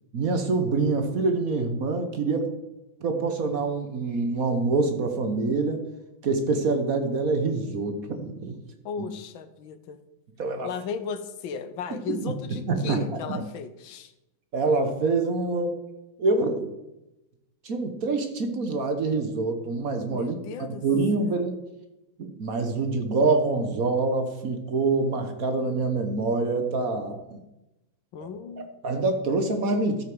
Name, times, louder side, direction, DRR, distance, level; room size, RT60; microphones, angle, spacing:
voice 1, 0.1-2.5 3.0-5.8 6.2-8.6 10.4-10.7 12.1-13.4 14.5-15.8 16.2-16.7 17.6-21.6 22.2-27.4 28.2-28.3 28.6-30.0, right 3 dB, 50° right, 6 dB, 1.3 m, -26 dB
voice 2, 8.8-10.0 10.6-14.1 20.1-20.8 21.2-21.4 28.1-28.7, left 6 dB, 75° left, 11 dB, 1.6 m, -36 dB
13.0 x 6.5 x 6.1 m, 0.95 s
omnidirectional pair, 2.2 m